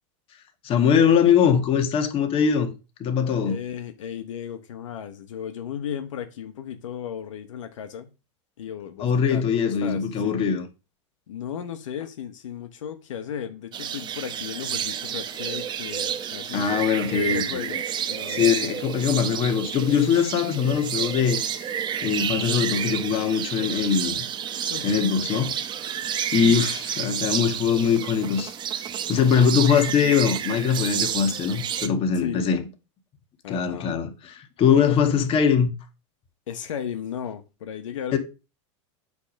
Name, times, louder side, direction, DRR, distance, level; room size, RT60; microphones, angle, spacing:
voice 1, 0.6-2.7 3.0-3.6 9.0-10.6 16.5-17.7 18.3-21.7 22.0-24.2 24.8-25.5 26.3-28.5 29.1-32.6 33.5-35.7 38.1-38.2, left 7 dB, 35° left, 1.8 m, -22 dB
voice 2, 3.4-8.1 8.6-10.4 11.3-17.8 18.1-18.7 20.6-20.8 24.7-25.1 26.3-26.7 30.0-30.1 32.1-32.5 33.4-34.0 34.7-35.2 36.5-38.2, left 9 dB, 90° left, 1.2 m, -35 dB
sound 1, 13.7-31.9, right 9 dB, 30° right, 0.8 m, -30 dB
8.3 x 3.5 x 6.4 m
supercardioid pair, 125°, 16 cm